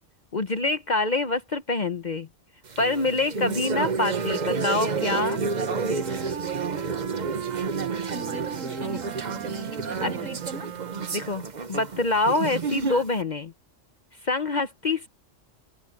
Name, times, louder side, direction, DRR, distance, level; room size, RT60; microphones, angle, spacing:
voice 1, 0.3-2.3 2.8-5.4 10.0-10.1 11.1-11.4 11.7-13.5 14.2-15.1, left 3 dB, 40° left, 0.9 m, -25 dB
sound 1, 2.7-13.2, right 4 dB, 40° right, 1.1 m, -30 dB
Wind instrument woodwind instrument, 4.0-11.5, right 8 dB, 90° right, 1.3 m, -37 dB
voice 2, 8.1-10.7 12.8-13.0, right 2 dB, 75° right, 6.7 m, -40 dB
open air
omnidirectional pair, 1.3 m